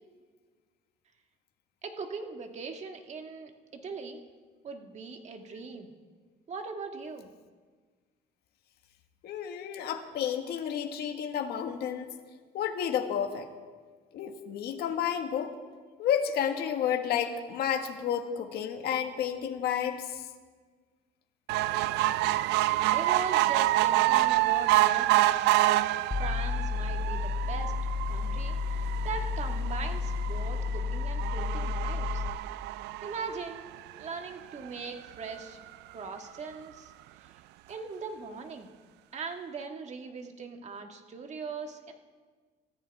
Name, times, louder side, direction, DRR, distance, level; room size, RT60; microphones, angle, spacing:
voice 1, 1.8-4.2 4.6-5.9 6.5-7.3 22.7-25.6 26.2-27.7 28.1-32.2 33.0-33.6 34.0-35.6 35.9-36.9 37.2-37.3 37.7-38.7 39.1-41.9, right 4 dB, 40° right, 4 dB, 1.8 m, -40 dB
voice 2, 9.2-12.1 12.5-13.5 14.1-15.5 16.0-20.3, left 8 dB, 70° left, 4 dB, 1.7 m, -31 dB
sound 1, 21.5-34.1 34.7-34.8 35.0-35.1 35.4-35.5, right 16 dB, 85° right, 0.4 m, -28 dB
sound 2, 26.1-32.3, left 5 dB, 15° left, 1.1 m, -32 dB
27.5 x 14.5 x 3.5 m, 1.5 s
cardioid pair, 110°, 17 cm